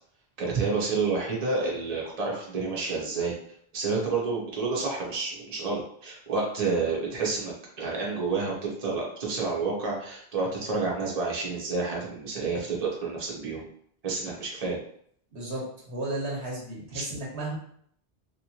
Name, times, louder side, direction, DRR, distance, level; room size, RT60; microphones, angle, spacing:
voice 1, 0.4-3.3 3.7-13.7 14.0-14.8 16.9-17.0, right 4 dB, 40° right, -3 dB, 0.9 m, -29 dB
voice 2, 15.3-17.6, right 2 dB, 85° right, -3 dB, 1.4 m, -34 dB
3.2 x 3.0 x 2.8 m, 0.64 s
omnidirectional pair, 1.1 m